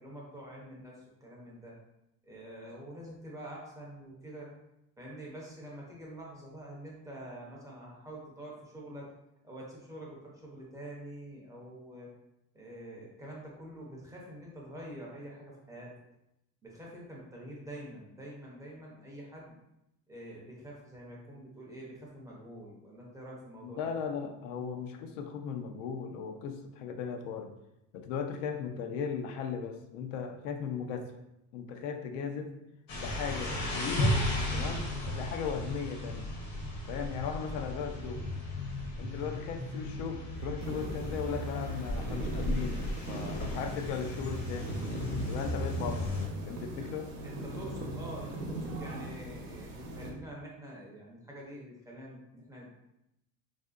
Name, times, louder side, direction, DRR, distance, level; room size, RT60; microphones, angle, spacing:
voice 1, 0.0-1.8 2.2-4.5 5.0-9.1 9.4-12.1 12.5-15.9 16.6-19.6 20.1-23.9 47.2-52.7, right 1 dB, 10° right, -4 dB, 0.5 m, -46 dB
voice 2, 23.6-27.5 27.9-31.1 31.5-32.5 33.0-34.2 34.5-36.3 36.9-38.3 39.0-44.7 45.2-46.1 46.4-47.1, left 6 dB, 85° left, 5 dB, 0.5 m, -37 dB
sound 1, 32.9-46.3, left 1 dB, 45° left, 0.7 m, -35 dB
sound 2, 40.3-43.5 43.8-44.1, right 1 dB, 50° right, 0.7 m, -47 dB
sound 3, 40.6-50.1, right 1 dB, 85° right, 0.8 m, -40 dB
3.4 x 2.5 x 2.3 m, 0.86 s
cardioid pair, 145°, 37 cm